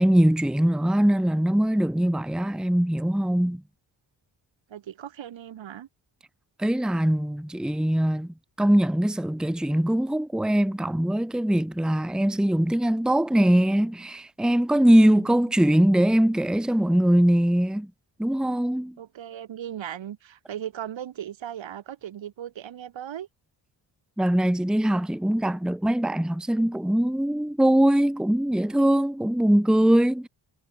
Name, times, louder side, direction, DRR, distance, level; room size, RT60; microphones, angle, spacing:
voice 1, 0.0-3.6 6.6-17.9 18.2-19.0 24.2-30.3, right 1 dB, ahead, 0.9 m, -22 dB
voice 2, 4.7-5.9 19.0-23.3, right 10 dB, 70° right, 2.7 m, -37 dB
supercardioid pair, 55°, 47 cm